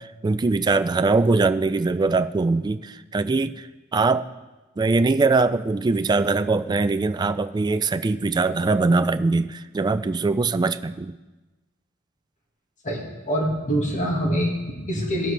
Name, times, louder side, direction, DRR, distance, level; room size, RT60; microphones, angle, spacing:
voice 1, 0.0-4.3 4.8-11.1, right 3 dB, 20° right, 11 dB, 0.3 m, -22 dB
voice 2, 12.8-15.3, equal, 35° left, -1 dB, 1.9 m, -25 dB
18.0 x 7.6 x 3.3 m, 1.1 s
head